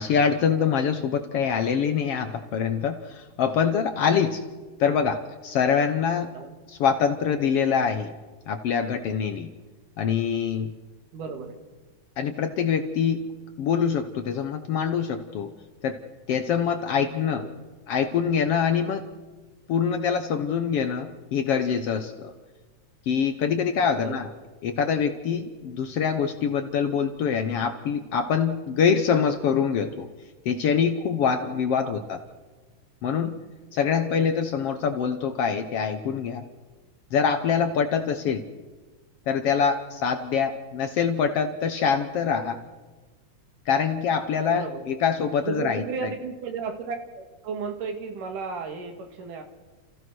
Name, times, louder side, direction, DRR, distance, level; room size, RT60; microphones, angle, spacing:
voice 1, 0.0-4.4 4.8-6.3 6.7-8.1 8.5-9.5 10.0-10.7 12.2-13.2 13.6-15.5 15.8-16.0 16.3-17.4 17.9-19.0 19.7-22.3 23.1-24.3 24.6-30.1 30.4-32.2 33.0-33.4 33.7-36.4 37.1-38.4 39.3-42.6 43.7-45.8, left 7 dB, 65° left, 7 dB, 1.6 m, -24 dB
voice 2, 11.1-11.6 17.4-17.6 23.9-24.3 31.8-32.1 34.0-34.3 38.2-38.3 42.5-42.7 44.5-45.0 45.4-49.4, right 5 dB, 90° right, 5 dB, 3.4 m, -34 dB
29.5 x 15.0 x 6.2 m, 1.3 s
omnidirectional pair, 3.6 m